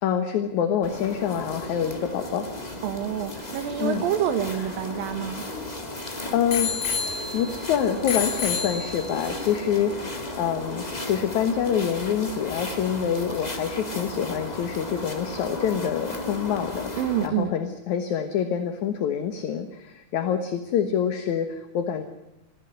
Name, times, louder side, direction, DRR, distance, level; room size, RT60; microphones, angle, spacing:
voice 1, 0.0-2.5 3.8-4.0 5.9-6.7 7.3-22.0, left 8 dB, 65° left, 8 dB, 2.4 m, -26 dB
sound 1, 0.8-17.3, left 1 dB, 15° left, 1.5 m, -35 dB
voice 2, 2.8-5.4 17.0-17.5, right 10 dB, 80° right, 7 dB, 2.8 m, -27 dB
Bicycle bell, 4.2-5.9 6.5-7.6 8.1-9.3 10.0-10.1, left 6 dB, 40° left, 3.5 m, -30 dB
21.5 x 15.0 x 9.8 m, 0.94 s
omnidirectional pair, 4.1 m